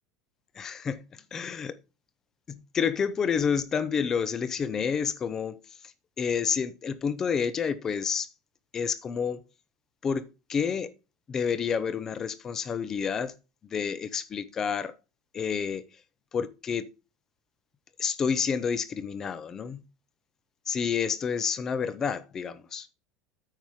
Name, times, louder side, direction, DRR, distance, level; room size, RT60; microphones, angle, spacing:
voice 1, 0.5-1.8 2.5-5.6 6.2-8.3 8.7-9.4 10.0-10.9 11.3-13.3 13.7-14.9 15.3-15.9 16.3-16.9 18.0-19.8 20.7-22.9, left 6 dB, 20° left, 0.7 m, -29 dB
9.0 x 5.5 x 4.7 m
cardioid pair, 170°, 2 cm